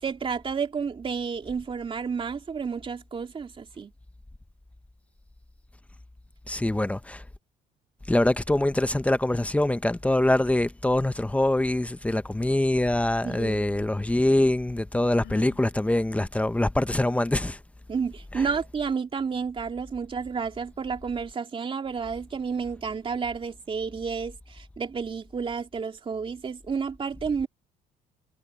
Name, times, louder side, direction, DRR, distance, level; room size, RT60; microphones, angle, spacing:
voice 1, 0.0-3.9 13.2-13.7 17.9-27.5, right 6 dB, 30° right, 3.0 m, -31 dB
voice 2, 6.5-7.2 8.1-17.6, left 1 dB, 10° left, 0.9 m, -24 dB
Sigh, 15.0-15.7, left 18 dB, 90° left, 5.1 m, -48 dB
cardioid pair, 110°, 17 cm